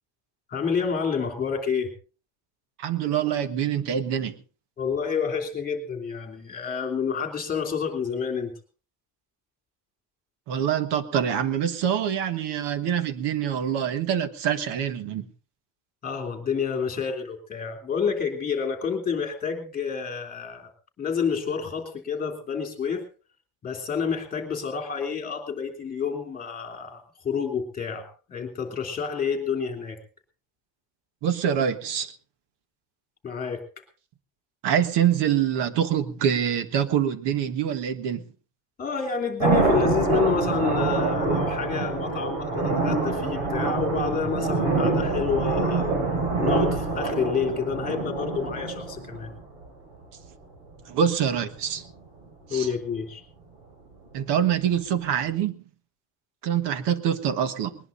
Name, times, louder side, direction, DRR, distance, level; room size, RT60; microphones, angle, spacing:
voice 1, 0.5-1.9 4.8-8.5 16.0-20.7 21.0-23.0 23.6-30.0 33.2-33.6 38.8-45.9 46.4-49.3 52.5-53.2, left 6 dB, 20° left, 3.1 m, -29 dB
voice 2, 2.8-4.3 10.5-15.3 31.2-32.1 34.6-38.2 50.9-51.8 52.5-52.7 54.1-55.6 56.4-57.8, right 9 dB, 60° right, 1.5 m, -25 dB
sound 1, 39.4-49.4 51.8-51.9, right 3 dB, 80° right, 6.2 m, -25 dB
20.5 x 20.0 x 2.6 m
cardioid pair, 170°, 48 cm